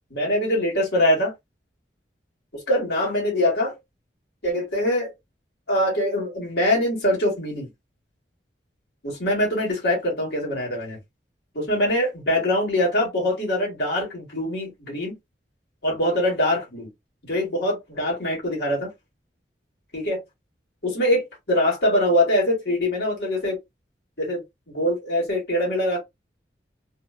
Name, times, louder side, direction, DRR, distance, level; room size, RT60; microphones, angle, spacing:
voice 1, 0.1-1.3 2.5-3.7 4.4-5.1 5.7-7.7 9.0-11.0 11.5-15.1 15.8-16.9 17.3-18.9 19.9-20.2 20.8-23.6 24.2-26.0, left 1 dB, 65° left, 1.4 m, -23 dB
2.6 x 2.2 x 2.4 m
head